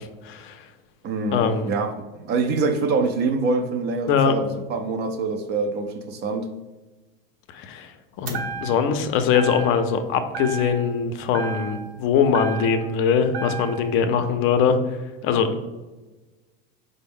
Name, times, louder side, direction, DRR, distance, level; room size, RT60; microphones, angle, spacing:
voice 1, 0.2-0.6 1.3-1.7 4.1-4.4 7.5-7.9 8.2-14.8 15.2-15.6, left 6 dB, 45° left, 8 dB, 0.5 m, -22 dB
voice 2, 1.0-6.5, right 3 dB, 40° right, 6 dB, 0.4 m, -25 dB
sound 1, 8.3-9.0 9.3-10.0 10.3-11.0 11.3-13.0 13.3-14.0, right 4 dB, 75° right, 0.8 m, -33 dB
4.2 x 2.0 x 3.5 m, 1.2 s
supercardioid pair, 110°, 29 cm